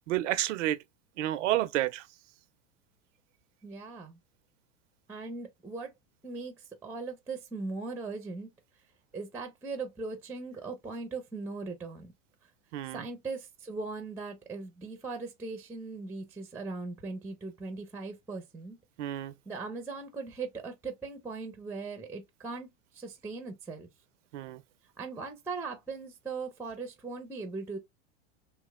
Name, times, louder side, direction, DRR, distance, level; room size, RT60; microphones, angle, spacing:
voice 1, 0.1-0.8 1.2-2.0 12.7-13.0 19.0-19.3 24.3-24.6, right 14 dB, 80° right, 0.5 m, -30 dB
voice 2, 3.6-4.2 5.1-5.9 6.2-8.5 9.1-12.1 12.9-18.8 19.5-23.9 25.0-27.8, right 4 dB, 5° right, 0.5 m, -39 dB
2.9 x 2.9 x 2.3 m
hypercardioid pair, 110°, 36 cm